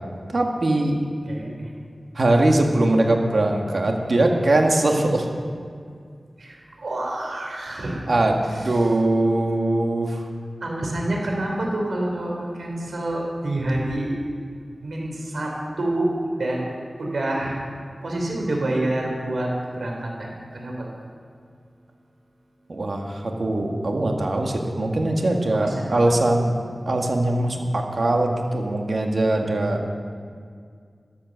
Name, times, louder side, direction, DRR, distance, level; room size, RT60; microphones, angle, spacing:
voice 1, 0.3-1.0 2.2-5.3 8.1-10.3 22.7-26.5 26.9-29.8, right 2 dB, 65° right, 2 dB, 2.0 m, -21 dB
voice 2, 6.4-8.0 10.6-14.2 14.8-15.5 15.8-16.1 16.4-16.7 17.0-17.6 18.0-20.9 25.6-25.7, right 1 dB, 90° right, -1 dB, 3.7 m, -27 dB
13.5 x 12.0 x 6.6 m, 2.1 s
wide cardioid pair, 80°, 0 cm